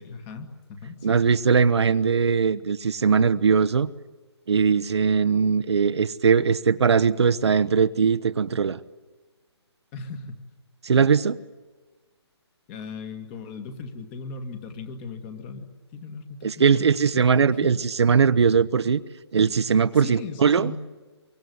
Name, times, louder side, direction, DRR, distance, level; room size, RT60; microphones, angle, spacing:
voice 1, 0.0-1.2 9.9-10.4 10.9-11.0 12.7-17.8 20.0-20.8, left 4 dB, 20° left, 7 dB, 2.1 m, -38 dB
voice 2, 1.0-3.9 4.5-8.8 10.8-11.4 16.4-19.0 19.3-20.7, right 6 dB, 70° right, 12 dB, 1.0 m, -20 dB
25.0 x 24.0 x 9.6 m, 1.3 s
hypercardioid pair, 160°, 15 cm